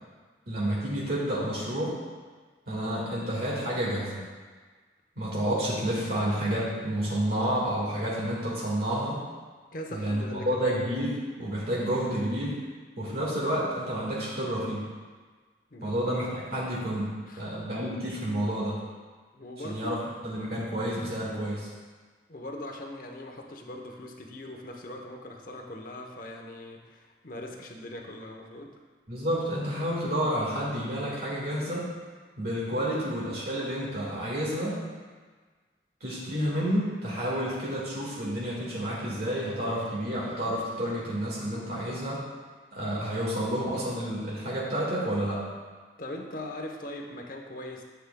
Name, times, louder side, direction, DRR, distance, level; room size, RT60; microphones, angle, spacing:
voice 1, 0.5-2.0 2.7-4.2 5.1-9.2 9.9-12.6 13.0-14.8 15.8-18.8 19.6-19.9 20.2-21.7 29.1-31.9 32.4-34.8 36.0-42.2 42.7-45.5, equal, 60° right, -6 dB, 1.9 m, -30 dB
voice 2, 9.7-10.6 13.1-13.2 15.7-16.0 17.3-17.4 19.3-19.9 22.3-28.7 46.0-47.9, left 1 dB, 50° left, 2 dB, 0.9 m, -40 dB
11.5 x 7.2 x 2.3 m, 1.4 s
head